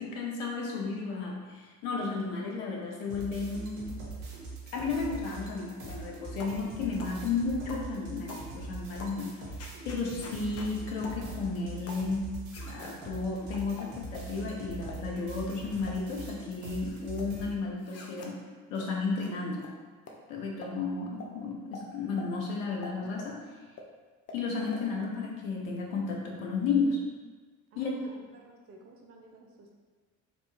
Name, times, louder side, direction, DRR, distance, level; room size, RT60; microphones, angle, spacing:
voice 1, 0.0-4.0 4.7-9.3 9.8-12.4 12.7-18.4 18.7-19.6 20.3-23.4 24.3-27.0 27.7-27.9, left 4 dB, 70° left, -1 dB, 0.7 m, -33 dB
sound 1, 3.1-17.5, right 3 dB, 60° right, 0.9 m, -42 dB
sound 2, 6.4-6.6 7.0-7.2 7.7-7.9 8.3-8.5 9.0-9.2 9.6-10.7 11.0-11.2 11.9-12.1 12.5-12.9 13.5-14.3 14.8-15.0 15.5-16.0 16.3-17.3 17.8-18.3 18.8-18.9 19.2-19.3 19.6-19.7 20.1-20.2 20.6-20.7 21.2-21.3 21.7-21.9 22.2-22.3 22.8-23.3 23.8-23.9 24.3-24.4 24.7-24.8, left 2 dB, 35° left, 0.6 m, -45 dB
voice 2, 27.7-29.8, right 2 dB, 35° right, 1 dB, 0.6 m, -54 dB
3.0 x 2.4 x 3.4 m, 1.4 s
figure-of-eight pair, 55°, 42 cm